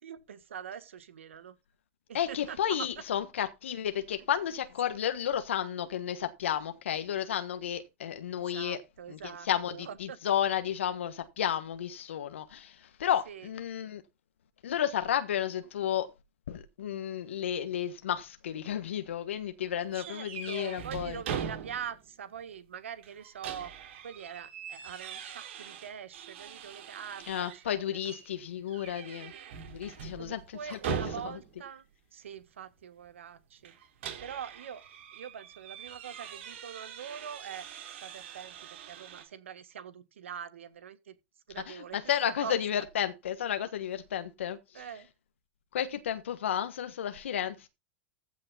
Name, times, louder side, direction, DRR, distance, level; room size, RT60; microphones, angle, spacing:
voice 1, 0.0-1.6 2.1-2.9 8.3-10.2 13.3-13.5 19.9-23.7 24.0-27.8 30.1-31.8 32.1-33.7 34.2-34.8 35.1-37.7 38.0-41.1 41.5-42.0 42.2-42.5 44.7-45.1, right 8 dB, 85° right, 1.6 m, -43 dB
voice 2, 2.1-8.8 9.1-14.0 14.6-16.1 16.5-21.2 27.3-29.3 29.7-31.0 41.7-44.8 45.7-47.7, left 10 dB, 80° left, 1.4 m, -32 dB
sound 1, 19.9-22.1 22.4-22.5 23.0-27.7 28.0-28.3 28.7-31.6 33.6-39.2, right 7 dB, 70° right, 3.9 m, -42 dB
15.0 x 6.6 x 4.1 m
hypercardioid pair, 105°, 7 cm